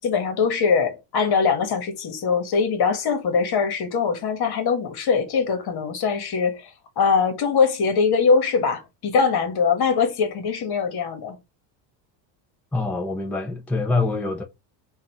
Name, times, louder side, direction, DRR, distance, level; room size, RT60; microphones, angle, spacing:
voice 1, 0.0-6.7 7.0-11.4, left 5 dB, 50° left, 1.6 m, -22 dB
voice 2, 12.7-14.4, left 3 dB, 5° left, 0.6 m, -25 dB
3.6 x 2.7 x 4.6 m
supercardioid pair, 100°, 50 cm